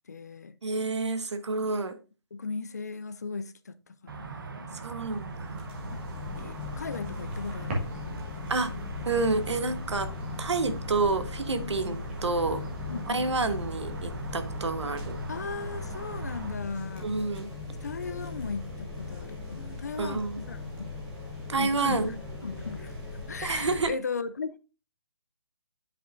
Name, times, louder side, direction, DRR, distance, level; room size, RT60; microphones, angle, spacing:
voice 1, 0.1-0.6 2.3-4.8 5.9-6.0 6.4-7.9 11.6-12.0 12.9-13.5 15.3-17.1 17.8-20.9 21.6-22.1 22.4-24.6, left 4 dB, 40° left, 0.4 m, -37 dB
voice 2, 0.6-2.0 4.7-5.7 8.5-8.7 9.0-10.1 10.4-12.6 13.1-15.2 17.0-17.5 20.0-20.4 21.5-22.1 23.4-23.9, right 3 dB, 85° right, 1.1 m, -29 dB
sound 1, 4.1-16.5, right 4 dB, 50° right, 0.9 m, -41 dB
sound 2, 5.0-23.9, left 3 dB, 10° right, 0.9 m, -39 dB
sound 3, 5.8-14.0, right 1 dB, 25° right, 1.5 m, -44 dB
9.9 x 5.5 x 2.5 m
hypercardioid pair, 175°, 14 cm